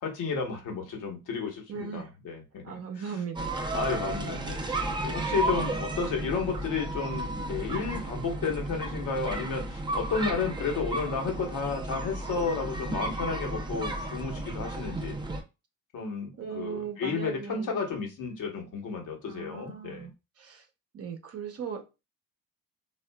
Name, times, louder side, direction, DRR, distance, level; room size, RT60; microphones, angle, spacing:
voice 1, 0.0-2.6 3.0-3.1 3.7-15.1 15.9-20.1, left 5 dB, 70° left, 1.1 m, -32 dB
voice 2, 1.7-2.1 2.6-3.5 16.4-17.8 19.3-20.1 20.4-20.6 20.9-21.8, right 6 dB, 45° right, 0.7 m, -38 dB
sound 1, 3.3-15.4, right 2 dB, 15° right, 0.5 m, -33 dB
3.7 x 2.4 x 2.2 m
cardioid pair, 110°, 32 cm